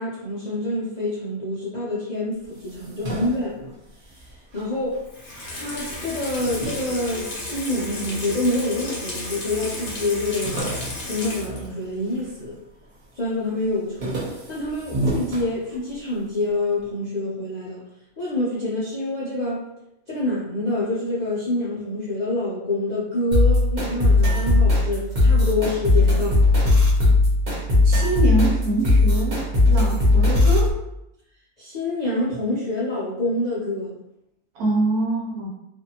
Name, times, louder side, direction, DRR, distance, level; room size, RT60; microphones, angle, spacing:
voice 1, 0.0-3.7 4.1-4.2 4.5-5.0 5.5-10.7 11.0-12.6 13.2-17.8 18.2-19.7 20.1-26.4 31.6-33.9, left 2 dB, 75° left, -8 dB, 0.4 m, -27 dB
sound 1, 2.4-5.1 5.4-7.9 8.5-9.2 9.5-9.6 9.8-12.4 12.8-13.3 13.6-16.2, right 2 dB, 55° right, 0.4 m, -33 dB
Water tap faucet / Sink (filling or washing), 5.1-11.8 12.1-12.2, left 2 dB, 45° left, 0.7 m, -33 dB
sound 2, 23.3-30.7, left 2 dB, 35° right, 0.8 m, -18 dB
voice 2, 27.8-30.7 34.5-35.5, right 2 dB, 75° right, -3 dB, 1.2 m, -24 dB
2.6 x 2.5 x 2.7 m, 0.86 s
omnidirectional pair, 1.6 m